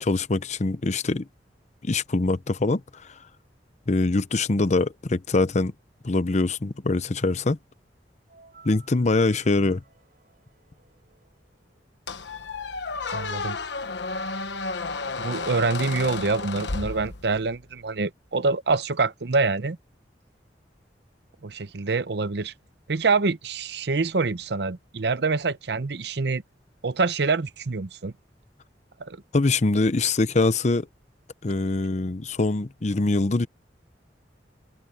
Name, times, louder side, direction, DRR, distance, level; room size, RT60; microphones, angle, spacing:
voice 1, 0.0-1.3 1.8-2.8 3.9-5.7 6.0-7.6 8.6-9.8 29.3-30.9 31.4-33.5, left 2 dB, 40° left, 0.7 m, -23 dB
computer booting up, 8.3-11.9, right 5 dB, 55° right, 7.5 m, -56 dB
Squeak, 12.1-17.6, left 3 dB, 85° left, 1.2 m, -32 dB
voice 2, 13.1-13.6 15.2-19.8 21.4-22.5 22.9-26.4 26.8-28.1 29.0-29.2, right 4 dB, 70° right, 0.8 m, -26 dB
head